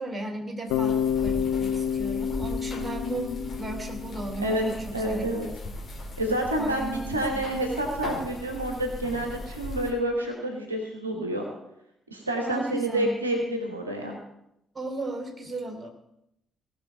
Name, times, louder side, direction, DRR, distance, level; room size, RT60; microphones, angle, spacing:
voice 1, 0.0-5.3 5.6-5.7 6.6-7.5 12.4-13.2 14.7-15.9, right 2 dB, 25° right, 3 dB, 2.8 m, -35 dB
Bass guitar, 0.7-4.7, left 8 dB, 70° left, 0.6 m, -29 dB
sound 1, 0.7-9.9, left 2 dB, 35° left, 2.8 m, -38 dB
voice 2, 4.9-5.5 6.2-11.4 12.1-14.2, right 1 dB, 85° right, 2 dB, 1.2 m, -28 dB
17.5 x 5.9 x 7.0 m, 0.81 s
figure-of-eight pair, 40°, 0 cm